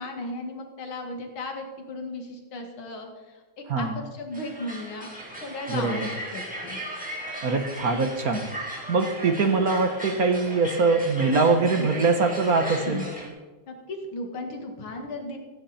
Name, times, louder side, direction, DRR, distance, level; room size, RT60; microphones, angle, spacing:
voice 1, 0.0-6.8 11.7-11.9 12.6-13.1 13.7-15.4, left 2 dB, 90° left, 3 dB, 2.9 m, -36 dB
sound 1, 4.3-13.3, right 1 dB, 5° right, 3.7 m, -37 dB
voice 2, 5.7-6.1 7.4-8.5 8.9-13.1, right 4 dB, 50° right, 7 dB, 1.6 m, -23 dB
16.0 x 15.5 x 4.4 m, 1.3 s
omnidirectional pair, 2.2 m